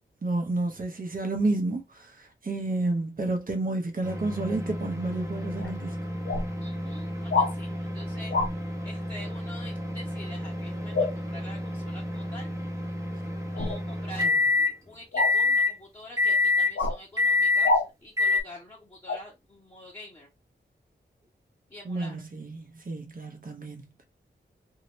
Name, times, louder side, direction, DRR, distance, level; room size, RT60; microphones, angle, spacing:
voice 1, 0.2-2.1 2.4-6.0 21.9-23.9, right 2 dB, 45° right, 0.9 m, -30 dB
sound 1, 4.0-14.7 15.2-15.7 16.2-16.7 17.2-17.7 18.2-18.4, left 3 dB, 15° right, 0.9 m, -28 dB
sound 2, 5.6-5.7 6.3-6.5 7.3-7.5 8.3-8.5 10.9-11.1 13.5-13.8 15.1-15.3 16.8-17.0 17.6-17.9 19.1-19.2, left 3 dB, 80° left, 0.6 m, -25 dB
voice 2, 6.6-8.6 8.8-12.5 13.5-14.3 14.9-20.3 21.7-22.2, left 1 dB, 20° left, 1.2 m, -46 dB
2.9 x 2.7 x 3.0 m
wide cardioid pair, 90°, 19 cm